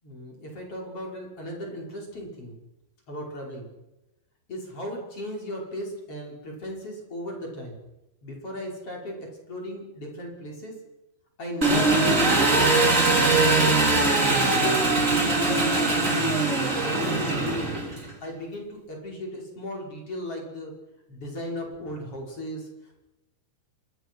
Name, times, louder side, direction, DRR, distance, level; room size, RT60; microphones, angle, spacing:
voice 1, 0.0-2.6 3.1-3.7 4.5-7.8 8.2-10.8 11.4-14.9 15.4-17.8 18.2-20.7 21.1-23.0, equal, 30° left, 0 dB, 6.3 m, -37 dB
Engine, 11.6-18.1, right 2 dB, 20° right, 3.3 m, -21 dB
26.5 x 23.0 x 6.3 m, 0.98 s
omnidirectional pair, 5.3 m